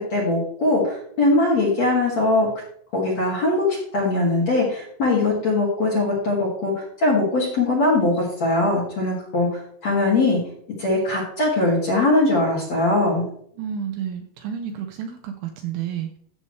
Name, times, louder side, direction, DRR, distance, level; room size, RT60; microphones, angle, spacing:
voice 1, 0.0-2.5 2.9-10.4 10.8-13.2, left 2 dB, 45° left, -4 dB, 2.5 m, -21 dB
voice 2, 13.6-16.2, right 8 dB, 80° right, 5 dB, 2.9 m, -30 dB
15.5 x 6.8 x 3.2 m, 0.65 s
omnidirectional pair, 6.0 m